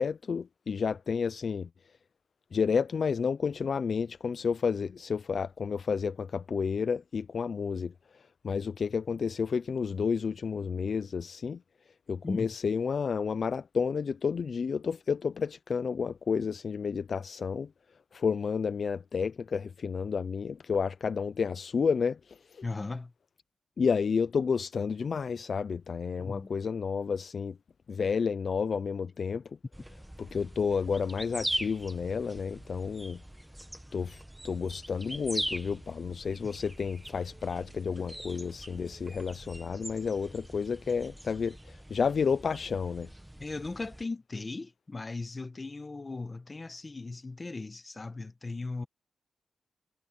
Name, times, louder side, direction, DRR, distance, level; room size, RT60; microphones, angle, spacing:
voice 1, 0.0-1.7 2.5-11.6 12.1-17.7 18.1-22.6 23.8-27.6 27.9-29.6 30.2-33.2 33.9-43.1, left 6 dB, 50° left, 0.4 m, -31 dB
voice 2, 22.6-23.1 26.2-26.5 43.4-48.9, left 3 dB, 25° left, 1.4 m, -37 dB
sound 1, 29.7-44.0, right 1 dB, 5° right, 1.4 m, -42 dB
wide cardioid pair, 125°, 0 cm